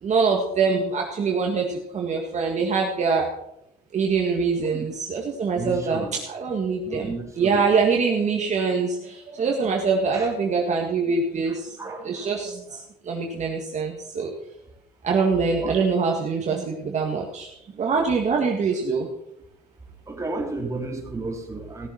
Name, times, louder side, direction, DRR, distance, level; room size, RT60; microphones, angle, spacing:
voice 1, 0.0-3.3 3.9-11.7 12.0-12.8 13.0-14.3 15.0-17.5 17.8-19.1, right 5 dB, 45° right, 0 dB, 1.9 m, -24 dB
voice 2, 5.5-6.2 6.8-7.7 10.1-10.3 11.5-12.3 15.6-15.7 20.1-21.9, right 3 dB, 15° right, 0 dB, 3.3 m, -33 dB
16.5 x 7.2 x 5.7 m, 0.79 s
cardioid pair, 110°, 17 cm